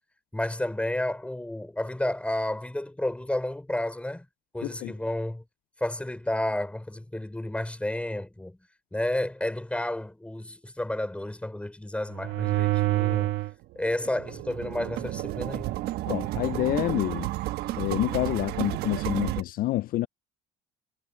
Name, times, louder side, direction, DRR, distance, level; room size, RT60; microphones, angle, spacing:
voice 1, 0.3-4.3 4.5-5.4 5.8-8.6 8.9-13.3 13.8-15.8, left 1 dB, 5° left, 5.4 m, -31 dB
voice 2, 4.6-4.9 16.1-17.3 17.8-20.1, left 15 dB, 60° left, 0.4 m, -28 dB
sound 1, 12.1-13.5 13.9-19.4, right 17 dB, 70° right, 1.3 m, -30 dB
supercardioid pair, 85°, 17 cm